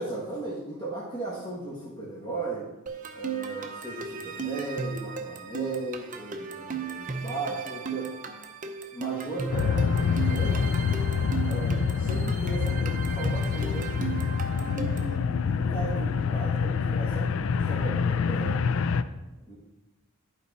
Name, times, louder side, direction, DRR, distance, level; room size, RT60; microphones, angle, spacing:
voice 1, 0.0-2.7 3.1-8.1 8.9-10.7 11.5-13.9 14.6-18.9 19.5-19.6, right 2 dB, 20° left, -7 dB, 1.4 m, -36 dB
sound 1, 2.9-15.2, right 5 dB, 35° right, 0.7 m, -36 dB
sound 2, 9.5-19.0, left 6 dB, 60° left, 0.4 m, -26 dB
11.0 x 4.8 x 4.1 m, 1.0 s
head